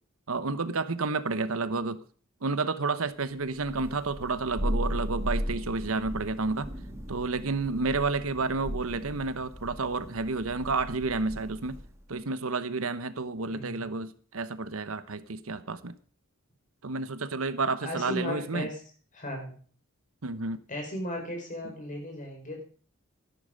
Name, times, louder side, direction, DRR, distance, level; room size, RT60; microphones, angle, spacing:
voice 1, 0.3-2.0 2.4-6.7 7.1-11.8 12.1-15.9 16.8-18.7 20.2-20.6, right 3 dB, 75° right, 1.0 m, -30 dB
Thunder, 3.6-12.0, equal, 15° right, 1.8 m, -36 dB
voice 2, 13.5-13.9 17.8-18.8 19.1-19.5 20.7-22.6, left 1 dB, 40° left, 5.1 m, -36 dB
13.5 x 11.0 x 5.2 m
head